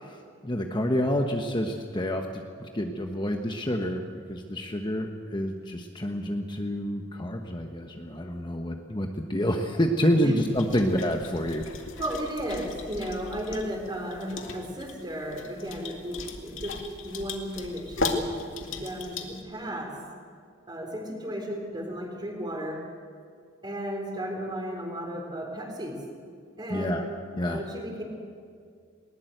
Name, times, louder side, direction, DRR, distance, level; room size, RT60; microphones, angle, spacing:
voice 1, 0.4-11.7 26.7-27.0 27.4-27.6, equal, 25° left, 4 dB, 1.1 m, -28 dB
sound 1, 10.5-19.4, left 3 dB, 80° left, 2.2 m, -37 dB
voice 2, 12.0-20.0 20.7-22.8 23.6-26.0 26.6-27.0 27.5-28.0, equal, 20° right, 2 dB, 3.9 m, -34 dB
20.0 x 19.5 x 8.0 m, 2.2 s
head